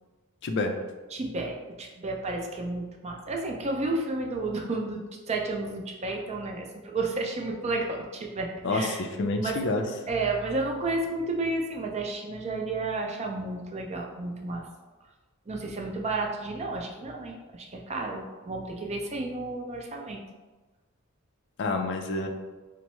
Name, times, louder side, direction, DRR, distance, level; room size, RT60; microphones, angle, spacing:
voice 1, 0.4-0.7 8.6-9.8 21.6-22.3, left 2 dB, 55° left, 4 dB, 0.4 m, -28 dB
voice 2, 1.1-9.1 9.4-9.6 10.1-14.7 15.5-20.2, right 2 dB, 30° right, 1 dB, 0.4 m, -32 dB
4.4 x 2.0 x 3.0 m, 1.2 s
head